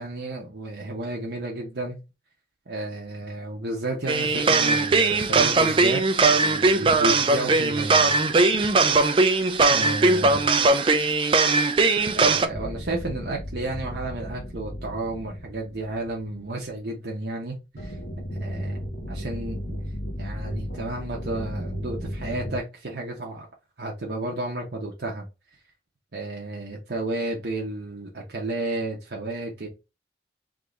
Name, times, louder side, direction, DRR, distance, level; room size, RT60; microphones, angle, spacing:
voice 1, 0.0-2.0 2.7-8.2 9.7-10.4 12.1-18.0 18.4-18.8 19.1-19.8 20.2-23.5 23.8-25.2 26.1-29.7, right 2 dB, 65° right, 0.9 m, -32 dB
sound 1, 4.1-12.5, right 3 dB, 30° right, 0.4 m, -20 dB
sound 2, 12.5-16.8 17.8-22.6, equal, 65° left, 0.9 m, -35 dB
3.7 x 2.9 x 3.7 m
head